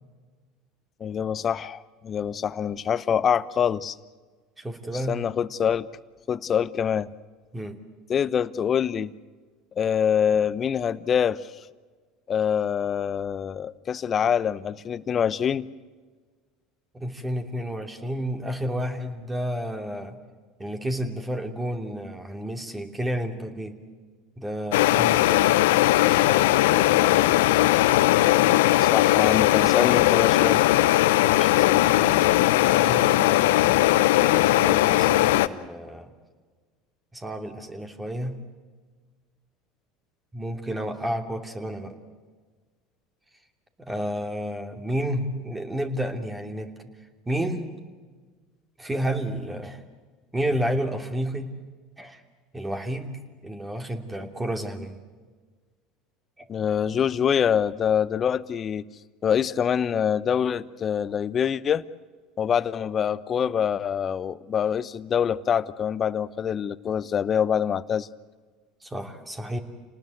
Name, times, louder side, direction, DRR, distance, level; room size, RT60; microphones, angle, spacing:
voice 1, 1.0-4.0 5.1-5.9 6.3-7.1 8.1-9.1 9.8-11.4 12.3-15.7 28.8-30.6 56.5-58.9 59.2-61.8 62.4-68.1, left 8 dB, 40° left, 17 dB, 0.9 m, -25 dB
voice 2, 4.6-5.2 7.5-7.8 16.9-20.2 20.6-23.8 24.4-27.8 31.2-32.3 32.7-36.1 37.1-38.4 40.3-42.0 43.8-46.9 47.3-47.7 48.8-49.8 50.3-51.5 52.0-52.2 52.5-55.0 56.4-56.5 68.8-69.6, equal, 15° right, 6 dB, 2.9 m, -31 dB
sound 1, 24.7-35.5, left 16 dB, 80° left, 0.8 m, -19 dB
28.5 x 19.5 x 8.0 m, 1.4 s
hypercardioid pair, 85°, 0 cm